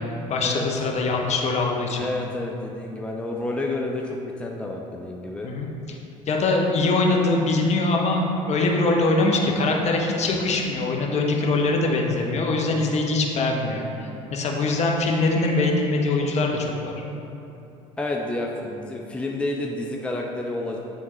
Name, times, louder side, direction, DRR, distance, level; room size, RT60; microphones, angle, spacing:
voice 1, 0.0-2.1 5.4-6.0 6.3-16.9, left 2 dB, 40° left, 0 dB, 0.9 m, -23 dB
voice 2, 2.0-5.5 18.0-20.8, left 2 dB, 5° left, -1 dB, 0.6 m, -30 dB
10.0 x 3.6 x 3.1 m, 2.8 s
hypercardioid pair, 60°, 17 cm